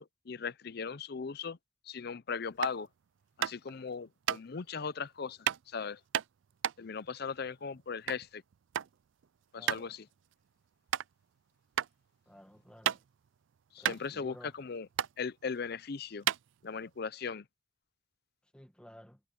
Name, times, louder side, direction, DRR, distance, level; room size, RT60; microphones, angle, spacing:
voice 1, 0.0-1.6 1.9-2.9 3.4-6.0 6.8-8.4 9.5-10.1 13.7-14.9 15.2-16.3 16.6-17.4, left 5 dB, 55° left, 0.6 m, -38 dB
sound 1, 2.6-2.8 3.4-3.7 4.2-4.4 5.5-5.6 6.1-8.3 8.5-8.9 9.2-9.3 9.7-9.9 10.3-10.4 10.9-11.1 11.8-11.9 12.3-13.3 13.6-13.7 13.8-14.7 14.9-15.1 15.8-15.9 16.2-17.0, right 10 dB, 75° right, 0.4 m, -32 dB
voice 2, 9.6-9.9 12.3-13.0 13.8-14.5 18.5-19.2, equal, 5° left, 1.5 m, -53 dB
head